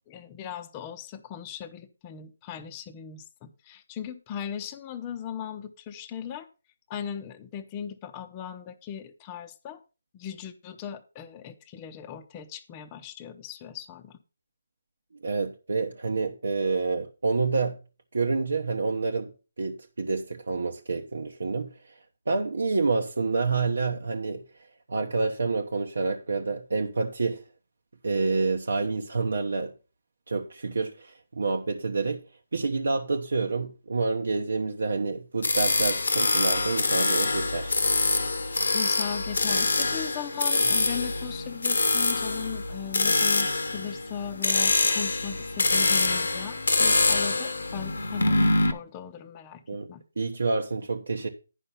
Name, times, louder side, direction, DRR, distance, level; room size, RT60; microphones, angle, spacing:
voice 1, 0.1-6.5 6.9-9.8 10.1-14.2 38.7-48.4 48.7-49.6 49.9-50.0, left 9 dB, 25° left, 0.7 m, -38 dB
voice 2, 15.2-17.8 18.1-19.3 19.6-21.7 22.3-24.4 24.9-27.4 28.0-29.7 30.3-32.2 32.5-37.8 49.7-49.9 50.2-51.3, right 4 dB, 75° right, 0.9 m, -28 dB
sound 1, 35.4-48.7, left 3 dB, 80° left, 1.1 m, -25 dB
10.0 x 5.5 x 5.6 m
figure-of-eight pair, 155°, 0 cm